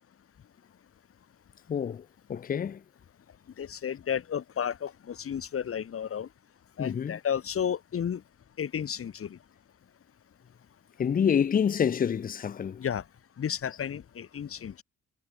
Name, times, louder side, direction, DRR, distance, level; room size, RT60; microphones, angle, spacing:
voice 1, 1.7-2.8 6.8-7.2 11.0-12.8, left 7 dB, 30° left, 0.5 m, -27 dB
voice 2, 3.6-6.3 6.8-8.2 8.6-9.4 12.8-13.0 13.4-14.8, left 8 dB, 45° left, 1.7 m, -32 dB
cardioid pair, 90°, 30 cm